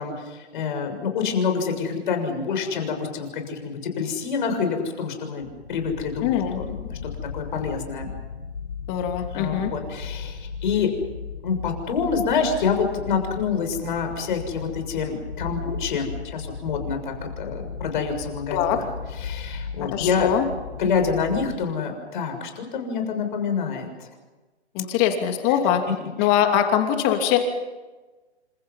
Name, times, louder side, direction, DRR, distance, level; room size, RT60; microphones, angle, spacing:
voice 1, 0.0-8.1 9.3-10.9 11.4-18.9 19.2-20.3 20.8-24.1, left 5 dB, 45° left, 5 dB, 6.8 m, -27 dB
sound 1, 5.4-21.6, left 5 dB, 70° left, 3.4 m, -36 dB
voice 2, 6.2-6.6 8.9-9.7 18.5-18.8 19.8-20.4 24.7-25.8 26.2-27.4, left 10 dB, 30° left, 5 dB, 2.8 m, -22 dB
29.0 x 27.0 x 5.7 m, 1.2 s
figure-of-eight pair, 135°, 33 cm